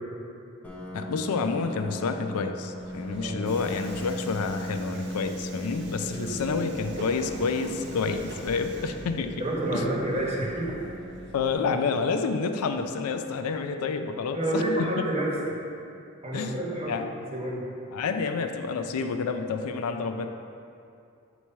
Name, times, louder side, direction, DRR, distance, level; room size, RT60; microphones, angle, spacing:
Piano, 0.6-16.1, equal, 5° left, 0.7 m, -40 dB
voice 1, 0.9-9.3 9.7-9.8 11.3-14.6 15.0-15.1 16.3-16.6 16.9-17.1 17.9-20.3, left 4 dB, 85° left, 7 dB, 0.4 m, -29 dB
Subway metro underground, 2.8-11.5, right 1 dB, 50° right, 0.7 m, -43 dB
voice 2, 9.4-10.8 14.3-15.6 16.2-17.0 17.3-17.7, right 1 dB, 30° right, -4 dB, 1.0 m, -29 dB
7.1 x 3.1 x 5.4 m, 2.6 s
head